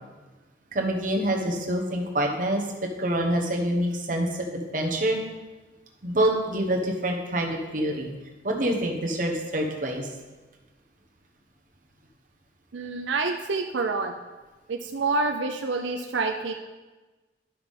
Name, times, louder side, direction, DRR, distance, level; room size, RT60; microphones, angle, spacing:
voice 1, 0.7-2.6 3.0-5.2 6.0-8.1 8.4-10.1, right 1 dB, 45° right, 1 dB, 1.1 m, -26 dB
voice 2, 12.7-14.1 14.7-16.5, right 3 dB, 85° right, 5 dB, 0.5 m, -27 dB
11.5 x 5.8 x 3.6 m, 1.2 s
head